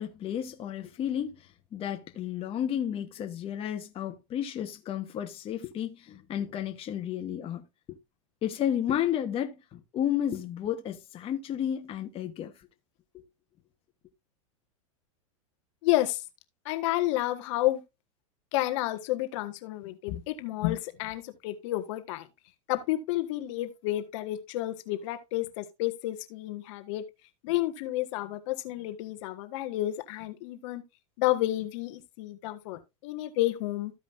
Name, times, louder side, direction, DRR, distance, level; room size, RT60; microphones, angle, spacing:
voice 1, 0.0-7.7 8.4-12.5, left 10 dB, 35° left, 1.1 m, -32 dB
voice 2, 15.8-16.2 16.6-17.8 18.5-22.3 22.7-27.0 27.4-30.8 31.2-33.9, left 16 dB, 60° left, 1.5 m, -30 dB
14.5 x 5.1 x 2.5 m
hypercardioid pair, 120°, 17 cm